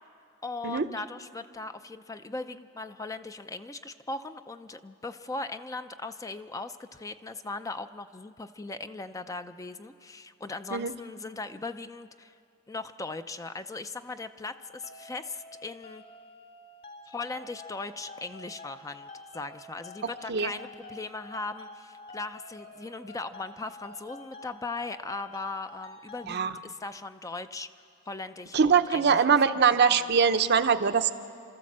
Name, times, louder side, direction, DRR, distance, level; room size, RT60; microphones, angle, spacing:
voice 1, 0.4-12.3 12.7-16.0 17.1-27.7 28.1-29.2 29.9-30.0, left 3 dB, 15° left, 10 dB, 0.4 m, -39 dB
sound 1, 14.5-26.3, left 2 dB, 50° left, 2.2 m, -48 dB
voice 2, 28.5-31.1, right 6 dB, 55° right, 9 dB, 0.7 m, -22 dB
30.0 x 13.5 x 7.4 m, 2.5 s
head